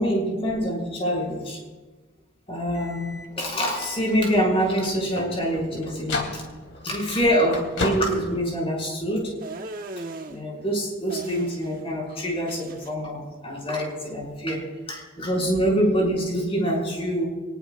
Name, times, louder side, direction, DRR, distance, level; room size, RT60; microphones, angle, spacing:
voice 1, 0.0-1.6 2.5-6.4 6.8-9.3 10.3-14.6 14.9-17.3, equal, 30° left, -2 dB, 5.7 m, -25 dB
sound 1, 2.7-9.2, left 2 dB, 70° left, 3.1 m, -35 dB
sound 2, 9.4-10.4 11.1-11.8 12.1-12.9, right 2 dB, 45° right, 1.2 m, -37 dB
24.5 x 20.0 x 2.6 m, 1.3 s
head